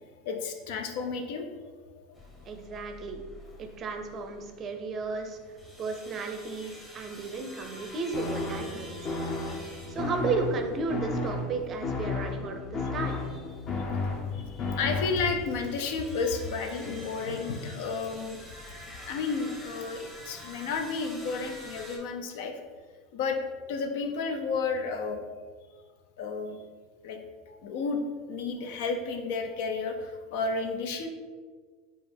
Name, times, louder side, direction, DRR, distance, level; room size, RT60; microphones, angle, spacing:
voice 1, 0.3-1.5 14.3-18.4 19.0-22.6 23.1-23.4 23.7-25.2 26.2-26.6 27.0-27.2 27.5-28.0 28.3-31.1, left 4 dB, 70° left, 5 dB, 0.5 m, -32 dB
sound 1, 2.1-22.0, equal, 10° left, 0.8 m, -49 dB
voice 2, 2.4-3.2 3.6-5.4 5.8-9.2 9.9-13.3, right 4 dB, 35° right, 5 dB, 0.5 m, -34 dB
sound 2, 8.1-15.5, left 3 dB, 40° left, 0.8 m, -33 dB
4.8 x 2.4 x 3.3 m, 1.5 s
supercardioid pair, 110°, 0 cm